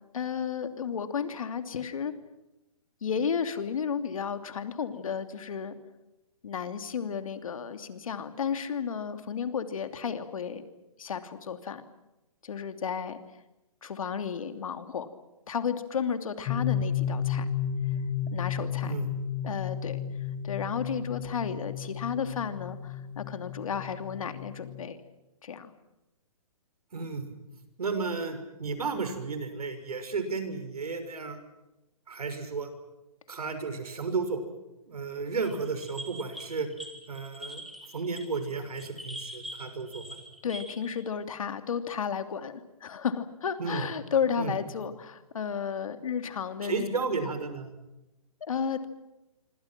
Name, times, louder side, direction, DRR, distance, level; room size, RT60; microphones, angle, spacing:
voice 1, 0.1-2.1 3.0-5.8 6.4-10.6 11.0-11.8 12.4-13.2 13.8-15.1 15.5-17.5 18.3-18.9 19.4-20.0 20.4-25.0 25.4-25.7 40.4-47.0 48.4-48.8, left 7 dB, 65° left, 8 dB, 2.9 m, -33 dB
sound 1, 16.5-24.9, left 8 dB, 20° left, 1.4 m, -33 dB
voice 2, 26.9-27.3 27.8-31.4 32.1-32.7 33.3-34.4 34.9-36.7 37.1-37.6 37.9-40.0 43.6-43.8 44.4-44.5 46.6-47.7, right 4 dB, 90° right, 9 dB, 6.3 m, -33 dB
sound 2, 35.4-40.9, equal, ahead, 2.4 m, -43 dB
26.5 x 26.0 x 6.1 m, 0.96 s
hypercardioid pair, 170°, 19 cm